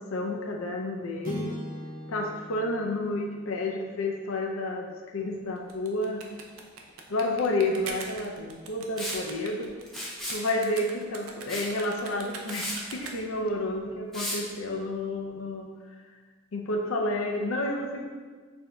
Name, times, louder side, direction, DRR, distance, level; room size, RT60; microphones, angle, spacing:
voice 1, 0.0-1.5 2.1-6.2 7.1-9.7 10.3-15.7 16.5-18.1, left 2 dB, 75° left, 1 dB, 0.5 m, -30 dB
sound 1, 1.2-5.7, left 1 dB, 40° right, 0.6 m, -42 dB
sound 2, 5.6-13.4, right 4 dB, 85° right, 0.5 m, -42 dB
Liquid, 9.0-9.2 9.9-10.4 11.5-11.7 12.1-12.2 12.5-12.8 14.1-14.4, equal, ahead, 0.7 m, -34 dB
6.4 x 2.6 x 2.2 m, 1.5 s
head